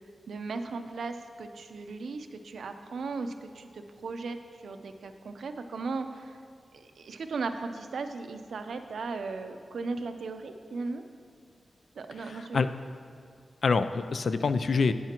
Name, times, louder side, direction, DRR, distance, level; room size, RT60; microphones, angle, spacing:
voice 1, 0.3-6.4 6.7-11.0 12.0-12.7, right 4 dB, 85° right, 7 dB, 0.6 m, -37 dB
voice 2, 12.2-12.7 13.6-14.9, left 4 dB, 65° left, 11 dB, 0.4 m, -26 dB
12.0 x 9.2 x 2.9 m, 2.2 s
wide cardioid pair, 130°, 0 cm